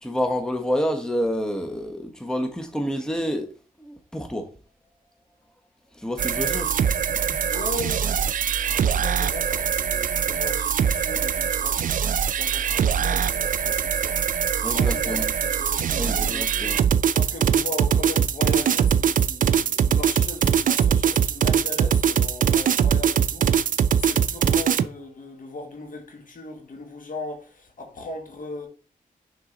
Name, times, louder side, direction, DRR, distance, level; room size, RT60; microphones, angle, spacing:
voice 1, 0.0-3.5 3.8-4.5 5.9-6.7 14.6-15.3 16.0-16.8, equal, 5° left, 1.0 m, -28 dB
sound 1, 6.2-24.8, right 8 dB, 60° right, 0.4 m, -22 dB
voice 2, 7.5-8.3 8.7-14.3 14.7-16.8 17.1-28.7, left 2 dB, 60° left, 1.7 m, -38 dB
6.2 x 3.9 x 3.9 m
cardioid pair, 65°, 16 cm